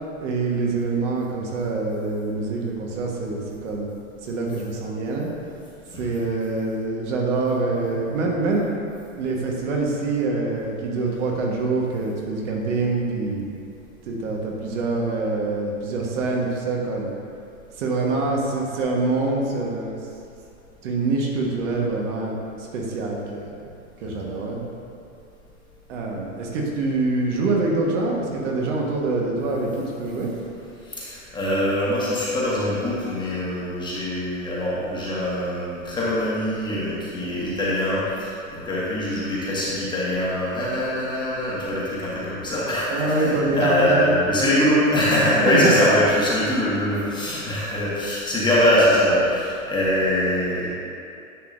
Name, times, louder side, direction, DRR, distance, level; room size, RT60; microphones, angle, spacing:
voice 1, 0.2-3.9 4.2-5.3 5.9-8.7 9.2-13.5 14.1-17.1 17.8-20.0 20.8-22.4 22.7-23.5 24.0-24.6 25.9-30.3 42.9-44.5 45.5-45.8, right 3 dB, 55° right, -1 dB, 1.4 m, -25 dB
voice 2, 30.8-50.7, left 1 dB, 10° left, -8 dB, 1.4 m, -23 dB
10.0 x 5.9 x 2.6 m, 2.5 s
hypercardioid pair, 135°, 42 cm